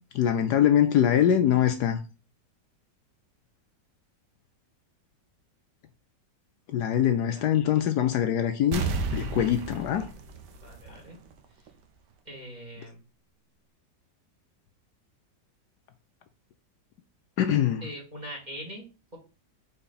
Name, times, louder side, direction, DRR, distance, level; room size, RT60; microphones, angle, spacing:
voice 1, 0.1-2.0 6.7-8.9 9.1-10.1 17.4-17.8, left 10 dB, 70° left, 1.1 m, -23 dB
voice 2, 7.1-7.5 10.6-11.2 11.5-11.7 12.2-13.0 17.8-19.2, equal, 25° right, 2.3 m, -42 dB
sound 1, 8.7-11.3 11.7-11.8, right 4 dB, 70° right, 1.5 m, -32 dB
4.4 x 4.3 x 5.6 m
omnidirectional pair, 1.9 m